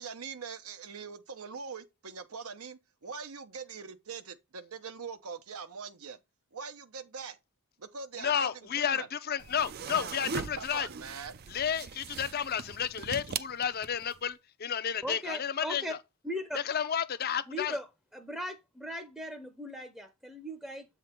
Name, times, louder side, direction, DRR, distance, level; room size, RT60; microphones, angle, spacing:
voice 1, 0.0-6.2 6.5-7.4 7.8-8.5 8.8-9.1 10.5-11.4, right 5 dB, 90° right, 0.9 m, -42 dB
voice 2, 8.2-10.9 11.5-16.0 16.5-17.8, left 8 dB, 45° left, 0.6 m, -32 dB
sound 1, 9.4-14.2, right 5 dB, 45° right, 0.4 m, -40 dB
voice 3, 15.0-15.9 16.2-16.6 17.5-17.9 18.1-20.9, equal, 5° right, 0.6 m, -38 dB
7.7 x 3.7 x 4.4 m
head